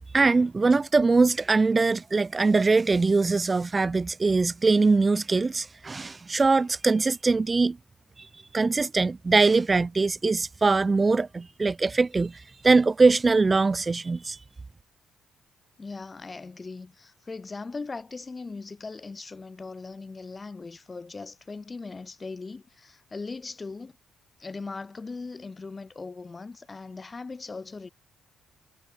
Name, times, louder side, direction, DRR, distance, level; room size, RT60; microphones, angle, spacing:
voice 1, 0.1-7.8 8.2-8.3 8.5-14.4, right 3 dB, 25° right, 0.9 m, -22 dB
voice 2, 15.8-23.9 24.4-27.9, left 4 dB, 30° left, 4.1 m, -39 dB
cardioid pair, 90°, 0 cm